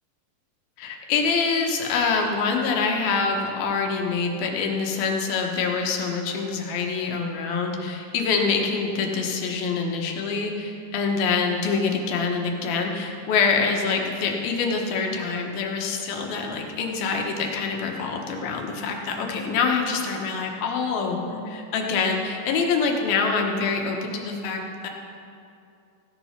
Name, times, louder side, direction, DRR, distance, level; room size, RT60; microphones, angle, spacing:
voice 1, 0.8-24.9, left 5 dB, 90° left, 1 dB, 3.2 m, -25 dB
16.0 x 10.5 x 5.9 m, 2.6 s
omnidirectional pair, 4.1 m